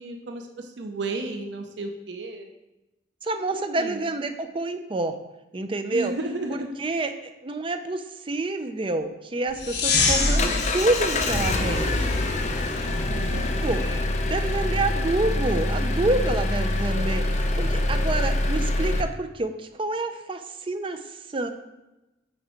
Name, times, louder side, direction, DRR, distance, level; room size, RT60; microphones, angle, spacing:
voice 1, 0.0-2.5 3.5-4.0 5.9-6.7 13.1-13.8, right 2 dB, 75° right, 5 dB, 0.6 m, -33 dB
voice 2, 3.2-5.1 5.5-6.1 6.5-12.2 13.6-13.8 14.3-21.5, right 2 dB, 30° right, 8 dB, 0.5 m, -28 dB
Engine, 9.5-19.0, left 1 dB, 40° left, 0.5 m, -25 dB
sound 1, 9.6-14.0, left 3 dB, 65° left, 0.9 m, -27 dB
6.6 x 4.5 x 4.5 m, 1.0 s
head